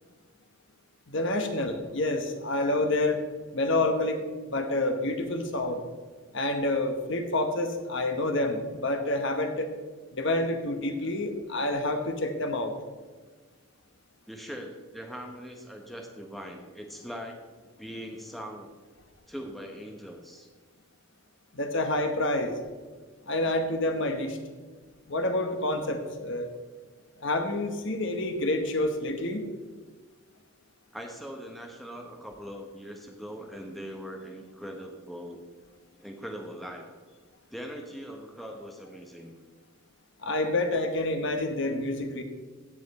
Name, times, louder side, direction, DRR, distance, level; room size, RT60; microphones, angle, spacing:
voice 1, 1.1-3.2 3.5-4.2 4.5-5.8 6.3-9.7 10.1-12.7 21.5-22.5 23.3-24.4 25.1-26.5 27.2-29.5 40.2-42.2, left 2 dB, 55° left, 6 dB, 1.2 m, -28 dB
voice 2, 14.3-17.4 17.8-18.7 19.3-20.5 30.9-35.4 36.0-36.9 37.5-39.3, equal, ahead, 2 dB, 1.1 m, -41 dB
16.0 x 7.5 x 4.2 m, 1.4 s
head